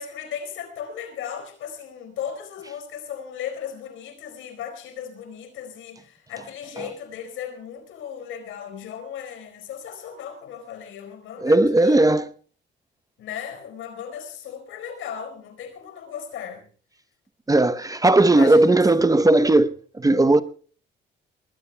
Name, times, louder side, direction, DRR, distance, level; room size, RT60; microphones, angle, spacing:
voice 1, 0.0-12.0 13.2-16.6 18.4-18.6 19.0-19.1, left 8 dB, 85° left, 4.6 m, -36 dB
voice 2, 11.4-12.3 17.5-20.4, right 2 dB, 15° right, 0.9 m, -17 dB
26.5 x 20.5 x 2.3 m
cardioid pair, 90°, 20 cm